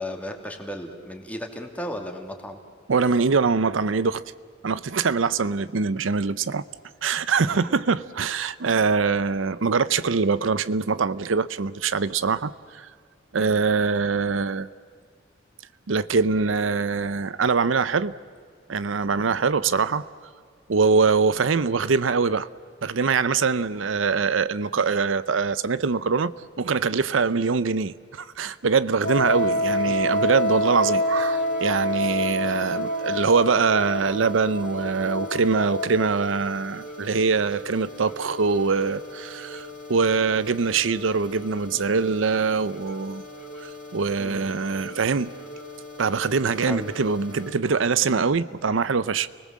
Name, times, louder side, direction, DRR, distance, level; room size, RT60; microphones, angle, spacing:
voice 1, 0.0-2.6 7.4-7.7 13.3-13.6 29.4-29.9 44.2-44.5 46.7-46.9 48.7-48.9, left 1 dB, 10° left, 3 dB, 2.6 m, -36 dB
voice 2, 2.9-4.2 4.6-6.6 7.0-12.9 13.3-14.7 15.9-18.1 18.7-20.0 20.7-22.5 22.8-26.3 26.6-43.2 43.6-45.3 46.0-49.3, right 5 dB, 85° right, 15 dB, 0.6 m, -23 dB
Wind instrument woodwind instrument, 29.0-36.4, equal, 60° left, 2.5 m, -26 dB
sound 1, 29.0-47.5, left 1 dB, 45° left, 3.0 m, -41 dB
30.0 x 20.0 x 7.5 m, 2.1 s
head